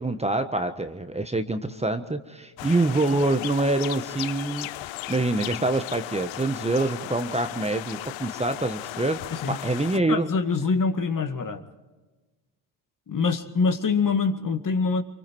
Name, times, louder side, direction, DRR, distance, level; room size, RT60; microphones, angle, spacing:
voice 1, 0.0-9.2 9.5-10.3, right 2 dB, 15° right, 8 dB, 1.3 m, -26 dB
sound 1, 2.6-10.0, left 17 dB, 65° left, 0.7 m, -36 dB
voice 2, 9.9-11.6 13.1-15.0, left 4 dB, 40° left, 7 dB, 2.0 m, -25 dB
24.5 x 23.5 x 4.6 m, 1.2 s
supercardioid pair, 70°, 49 cm